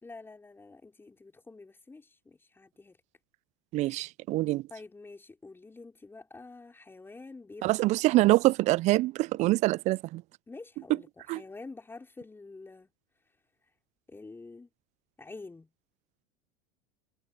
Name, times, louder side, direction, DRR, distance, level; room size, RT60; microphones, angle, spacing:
voice 1, 0.0-3.0 4.7-8.2 10.5-11.1 11.3-12.9 14.1-14.7 15.2-15.7, left 3 dB, 15° left, 4.9 m, -47 dB
voice 2, 3.7-4.7 7.6-10.2 11.3-11.4, right 18 dB, 45° right, 0.5 m, -25 dB
hypercardioid pair, 90°, 16 cm